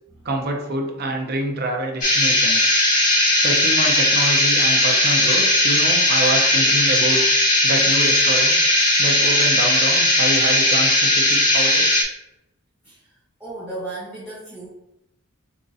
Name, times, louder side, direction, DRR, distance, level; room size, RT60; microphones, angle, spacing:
voice 1, 0.2-2.7 3.4-7.2 7.6-8.6 9.0-11.9, right 1 dB, 50° right, 1 dB, 0.8 m, -26 dB
sound 1, 2.0-12.0, left 1 dB, 40° left, 1.3 m, -17 dB
voice 2, 13.4-14.7, right 2 dB, 5° right, -10 dB, 1.1 m, -34 dB
7.1 x 2.6 x 2.7 m, 0.88 s
head